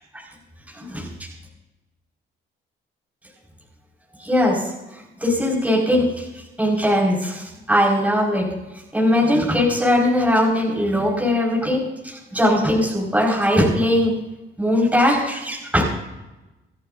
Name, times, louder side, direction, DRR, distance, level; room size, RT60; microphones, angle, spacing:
voice 1, 0.7-1.3 4.2-6.3 6.6-8.5 8.9-14.1 14.6-15.8, left 1 dB, 5° right, -4 dB, 4.9 m, -20 dB
27.0 x 11.5 x 2.6 m, 1.0 s
cardioid pair, 90°, 20 cm